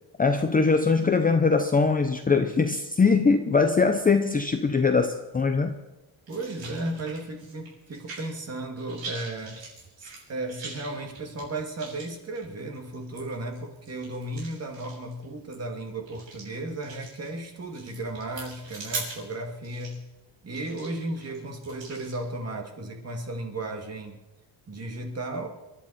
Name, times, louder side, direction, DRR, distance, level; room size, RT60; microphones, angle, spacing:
voice 1, 0.2-5.7, left 4 dB, 20° left, 6 dB, 0.7 m, -22 dB
voice 2, 6.3-9.6 10.0-20.0 20.4-24.2 24.7-25.5, right 2 dB, 30° right, 3 dB, 2.4 m, -35 dB
sound 1, 6.3-8.5 8.8-22.2, right 3 dB, 65° right, 6.5 m, -42 dB
28.0 x 11.5 x 4.3 m, 1.1 s
cardioid pair, 130°, 48 cm